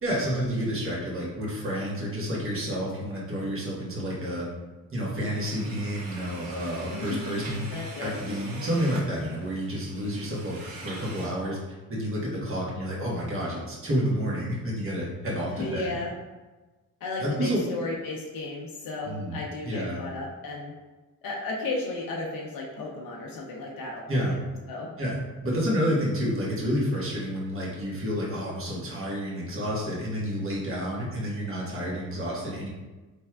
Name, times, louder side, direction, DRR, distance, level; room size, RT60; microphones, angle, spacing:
voice 1, 0.0-4.5 4.9-7.7 8.0-11.6 11.9-15.9 17.2-17.6 19.0-19.4 19.6-20.0 24.1-24.3 25.0-32.7, equal, 35° right, -5 dB, 1.4 m, -29 dB
sound 1, 5.2-11.3, right 2 dB, 75° right, 0.9 m, -43 dB
voice 2, 6.9-7.4 7.7-8.1 15.5-16.1 17.0-20.7 21.2-24.4 24.7-24.9, left 2 dB, 70° left, -2 dB, 0.7 m, -34 dB
4.6 x 3.3 x 2.3 m, 1.2 s
cardioid pair, 90°, 35 cm